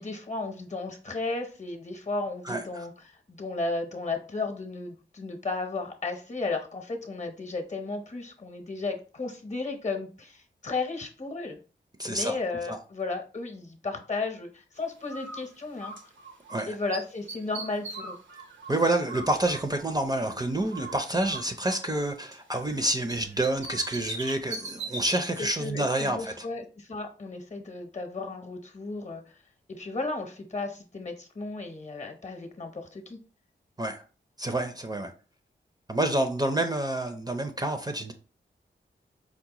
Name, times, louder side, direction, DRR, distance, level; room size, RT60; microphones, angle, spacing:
voice 1, 0.0-11.6 12.0-15.9 16.7-18.2 25.4-29.3 29.7-33.2, left 3 dB, 35° left, 0.8 m, -34 dB
voice 2, 2.4-2.9 12.0-12.4 12.7-12.8 16.5-16.7 18.7-26.4 33.8-34.0 34.4-35.1 35.9-38.1, right 1 dB, 20° right, 0.5 m, -28 dB
Bird, 15.1-16.6 16.9-20.4 20.7-22.8 23.1-25.2, right 3 dB, 85° right, 0.8 m, -40 dB
4.7 x 2.1 x 2.9 m
cardioid pair, 60°, 19 cm